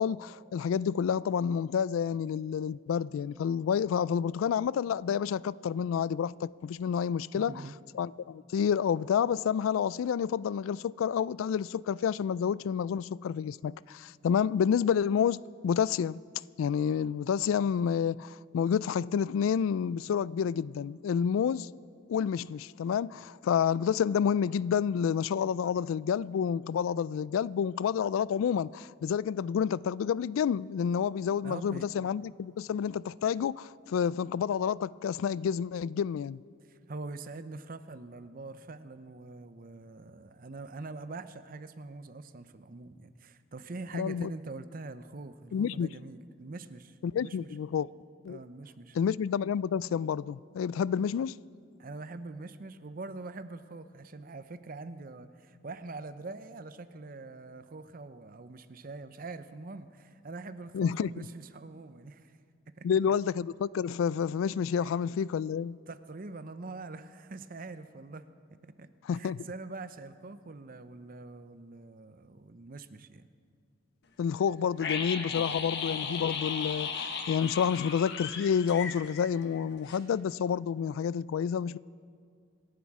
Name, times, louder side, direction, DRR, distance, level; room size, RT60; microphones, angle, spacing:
voice 1, 0.0-7.5 8.0-16.2 16.6-21.7 22.1-36.4 43.9-44.3 45.5-45.9 47.0-47.9 48.2-48.4 48.9-51.3 60.7-61.2 62.8-65.8 69.1-69.4 74.2-81.8, left 7 dB, 90° left, 0.3 m, -29 dB
voice 2, 7.3-7.7 31.4-31.9 36.7-47.5 48.3-49.0 51.8-62.4 62.8-62.9 64.8-64.9 65.9-68.2 68.6-73.3, right 3 dB, 45° right, 0.7 m, -44 dB
sound 1, 74.8-79.6 79.9-80.0, left 6 dB, 60° left, 1.3 m, -35 dB
26.5 x 11.5 x 4.8 m
head